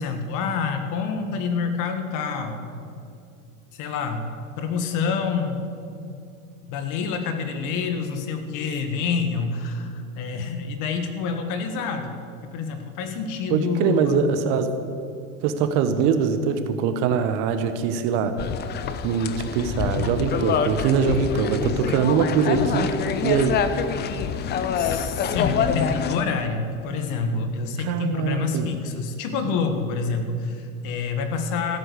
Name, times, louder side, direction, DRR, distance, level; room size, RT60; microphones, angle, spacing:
voice 1, 0.0-2.7 3.7-4.3 4.6-5.7 6.7-12.2 12.5-14.2 24.3-31.8, left 5 dB, 50° left, 7 dB, 1.7 m, -27 dB
voice 2, 13.5-14.7 15.4-18.3 19.0-22.9 23.2-23.6 27.8-28.7 29.5-29.6, right 6 dB, 45° right, 9 dB, 1.2 m, -22 dB
sound 1, 18.4-26.2, left 7 dB, 25° left, 0.7 m, -26 dB
14.0 x 7.8 x 8.2 m, 2.5 s
hypercardioid pair, 120°, 42 cm